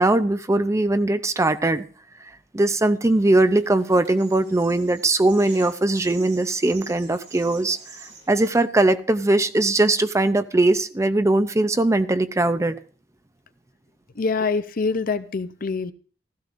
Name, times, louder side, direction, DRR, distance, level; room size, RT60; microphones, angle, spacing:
voice 1, 0.0-1.8 2.5-7.8 8.3-12.8, right 2 dB, 15° right, 11 dB, 0.5 m, -20 dB
sound 1, 3.0-8.5, right 5 dB, 65° right, 6.2 m, -46 dB
voice 2, 14.1-15.9, left 4 dB, 50° left, 13 dB, 0.6 m, -25 dB
16.0 x 13.5 x 2.5 m, 0.41 s
head